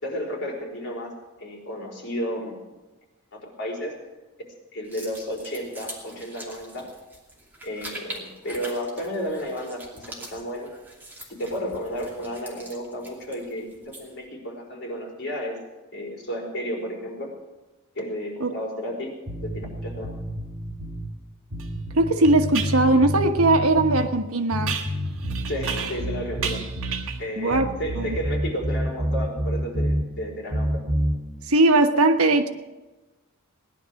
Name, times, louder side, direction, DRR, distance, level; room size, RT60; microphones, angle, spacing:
voice 1, 0.0-1.1 1.4-2.7 3.3-4.0 4.7-6.9 7.6-10.7 11.3-15.6 15.9-17.3 17.9-19.1 19.4-20.1 25.5-26.7 27.2-30.8, equal, 50° left, -2 dB, 4.7 m, -32 dB
sound 1, 4.8-14.2, right 1 dB, 10° right, 2.7 m, -43 dB
sound 2, 19.3-21.1 21.5-24.1 24.5-27.1 27.5-30.1 30.5-31.2, equal, 50° right, 4.1 m, -28 dB
sound 3, 21.6-21.7 22.5-22.8 24.7-26.1 26.4-27.3, right 7 dB, 65° right, 1.8 m, -32 dB
voice 2, 21.9-24.8 27.4-27.7 28.0-28.2 31.5-32.5, right 2 dB, 80° right, 7 dB, 1.3 m, -19 dB
18.0 x 11.0 x 6.4 m, 1.2 s
head